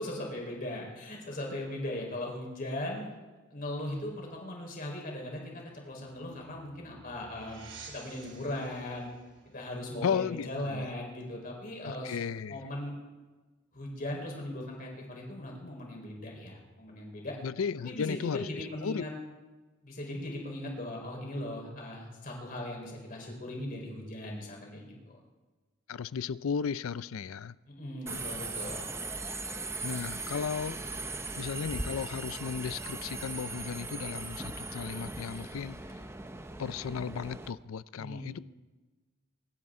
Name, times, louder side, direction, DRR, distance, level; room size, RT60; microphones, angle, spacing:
voice 1, 0.0-3.1 3.5-7.6 7.9-9.1 9.4-12.2 12.5-13.0 13.7-17.4 17.8-19.1 19.8-25.2 27.7-28.9 38.0-38.4, left 1 dB, 45° left, 4.4 m, -38 dB
sound 1, 6.2-11.1, right 4 dB, 60° right, 3.5 m, -53 dB
voice 2, 10.0-10.9 11.8-12.6 17.4-18.5 18.8-19.0 25.9-27.5 29.8-30.8 31.4-35.8 36.6-38.4, left 6 dB, 85° left, 0.4 m, -34 dB
Subway metro underground, 28.1-37.5, right 3 dB, 10° right, 0.6 m, -39 dB
24.5 x 12.0 x 3.8 m
head